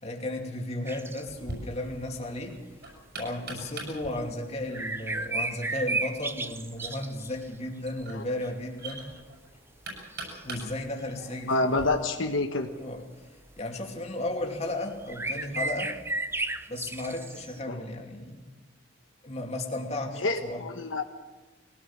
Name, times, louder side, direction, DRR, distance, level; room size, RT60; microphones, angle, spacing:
voice 1, 0.0-2.6 3.1-9.0 10.4-11.8 12.8-15.9 16.7-18.5 19.2-20.6, left 1 dB, 35° left, 2 dB, 2.8 m, -34 dB
sound 1, 0.9-1.2 3.3-3.4 4.1-4.2 4.7-7.5 8.2-8.6 9.1-9.2 10.1-10.6 11.2-11.5 13.4-13.6 14.7-14.8 15.0-17.6, right 3 dB, 10° right, 0.8 m, -33 dB
Knock, 1.3-11.9, right 2 dB, 55° right, 7.0 m, -44 dB
voice 2, 11.5-12.7 17.7-17.8 20.2-21.0, left 2 dB, 75° left, 4 dB, 1.4 m, -27 dB
22.5 x 17.5 x 7.4 m, 1.2 s
head